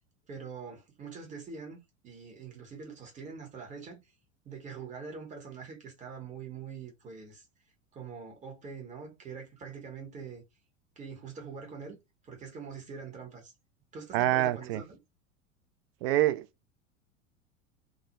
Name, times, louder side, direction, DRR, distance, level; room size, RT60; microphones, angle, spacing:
voice 1, 0.3-1.8 2.0-4.0 4.4-7.4 7.9-10.4 11.0-12.0 12.2-13.5 13.9-15.0, right 5 dB, 20° right, 0.9 m, -44 dB
voice 2, 14.1-14.8 16.0-16.5, right 14 dB, 55° right, 0.4 m, -26 dB
2.4 x 2.0 x 2.9 m
figure-of-eight pair, 80°, 37 cm